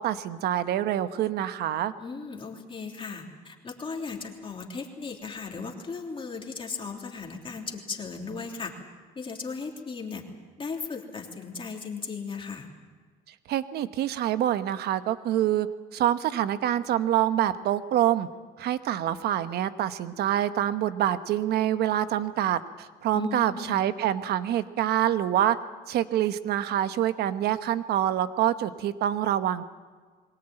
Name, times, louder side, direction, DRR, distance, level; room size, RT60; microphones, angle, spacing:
voice 1, 0.0-1.9 13.5-15.7 15.9-18.3 18.6-25.6 25.9-29.6, right 11 dB, 70° right, 11 dB, 1.1 m, -26 dB
voice 2, 2.0-8.8 9.1-10.2 10.6-12.7 23.1-23.8, left 5 dB, 30° left, 1 dB, 3.3 m, -36 dB
22.5 x 18.0 x 9.0 m, 1.5 s
cardioid pair, 110°, 17 cm